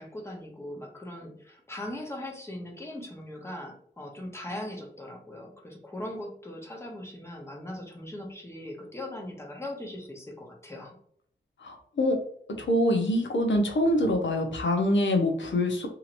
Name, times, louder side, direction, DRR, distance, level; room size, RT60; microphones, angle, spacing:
voice 1, 0.0-11.0, left 1 dB, 15° left, 0 dB, 0.8 m, -40 dB
voice 2, 11.6-12.2 12.6-15.9, left 1 dB, 80° left, 3 dB, 0.7 m, -25 dB
2.8 x 2.8 x 2.5 m, 0.62 s
wide cardioid pair, 110°, 19 cm